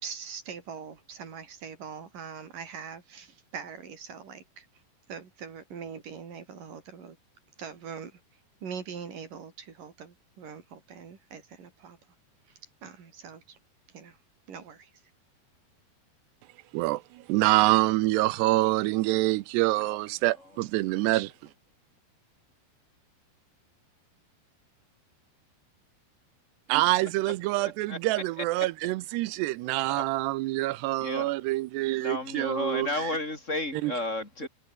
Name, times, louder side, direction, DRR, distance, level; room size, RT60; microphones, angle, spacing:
voice 1, 0.0-4.7 5.1-7.2 7.6-8.1 8.6-12.0 12.8-13.6 13.9-14.2 14.5-14.9, right 6 dB, 55° right, 5.3 m, -42 dB
voice 2, 16.7-21.3 26.7-33.1 33.8-33.9, right 19 dB, 90° right, 2.8 m, -26 dB
voice 3, 27.6-28.0 28.4-28.7 29.9-30.1 31.0-31.3 32.0-34.5, left 2 dB, 15° left, 4.2 m, -33 dB
omnidirectional pair, 4.8 m